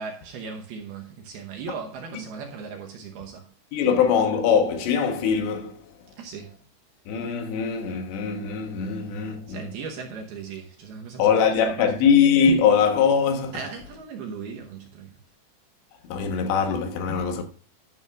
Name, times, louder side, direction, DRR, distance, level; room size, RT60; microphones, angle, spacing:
voice 1, 0.0-3.5 6.2-6.6 9.5-11.3 11.6-11.9 13.5-15.2, right 5 dB, 70° right, 2.5 m, -37 dB
voice 2, 3.7-5.9 7.1-9.7 11.2-13.6 16.1-17.4, left 6 dB, 75° left, 3.3 m, -22 dB
11.0 x 11.0 x 2.4 m
omnidirectional pair, 5.4 m